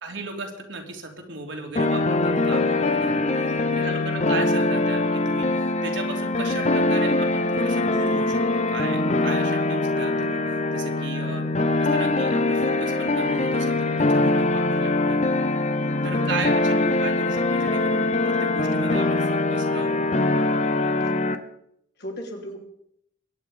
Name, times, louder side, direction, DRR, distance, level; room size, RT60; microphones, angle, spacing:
voice 1, 0.0-3.2 3.7-11.4 11.8-15.2 16.0-20.0, right 3 dB, 70° right, 2 dB, 2.9 m, -36 dB
sound 1, 1.8-21.4, left 2 dB, 35° left, 1.0 m, -23 dB
voice 2, 22.0-22.6, equal, 60° left, 1 dB, 3.3 m, -36 dB
22.5 x 9.2 x 5.2 m, 0.73 s
head